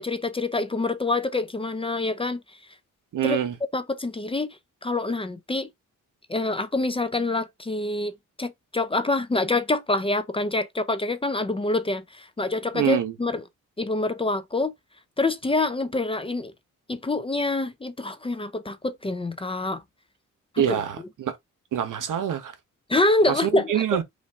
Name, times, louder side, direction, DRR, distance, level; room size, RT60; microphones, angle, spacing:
voice 1, 0.0-2.4 3.2-3.4 3.7-4.5 4.8-5.7 6.3-8.1 8.4-13.4 13.8-14.7 15.2-16.5 16.9-19.8 20.5-20.8 22.9-23.8, left 2 dB, 15° left, 0.5 m, -26 dB
voice 2, 3.1-3.6 12.7-13.1 20.6-21.4 21.7-22.5 23.3-24.0, right 10 dB, 75° right, 1.0 m, -25 dB
5.1 x 2.6 x 3.4 m
wide cardioid pair, 140°, 31 cm